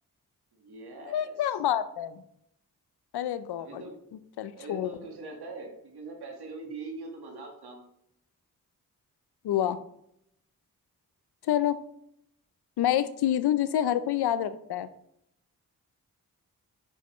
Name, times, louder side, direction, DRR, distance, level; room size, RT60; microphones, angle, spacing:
voice 1, 0.5-1.4 3.6-4.0 4.6-7.8, right 3 dB, 80° right, 1 dB, 1.8 m, -42 dB
voice 2, 1.1-2.2 3.1-3.8 4.4-4.9 9.4-9.8 11.5-11.8 12.8-14.9, left 11 dB, 85° left, 14 dB, 0.6 m, -27 dB
8.2 x 6.5 x 3.1 m, 0.76 s
cardioid pair, 45°, 38 cm